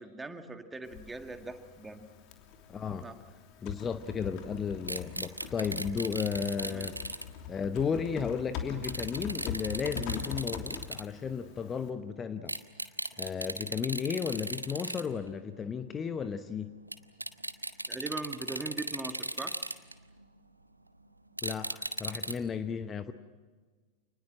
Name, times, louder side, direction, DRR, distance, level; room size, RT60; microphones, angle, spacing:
voice 1, 0.0-2.1 3.0-3.2 6.6-6.9 17.9-19.6, right 3 dB, 10° right, 7 dB, 1.9 m, -40 dB
Typing, 0.8-11.9, left 7 dB, 40° left, 3.0 m, -43 dB
voice 2, 2.7-3.1 3.6-7.0 7.5-12.6 13.2-16.8 21.4-23.1, left 6 dB, 20° left, 10 dB, 0.9 m, -34 dB
sound 1, 4.9-7.2 8.8-11.0 12.5-15.0 15.3-15.4 16.9-17.0 17.2-20.2 21.4-22.3, right 1 dB, 85° right, 1.1 m, -36 dB
27.5 x 20.0 x 7.6 m, 1.4 s
figure-of-eight pair, 90°, 0 cm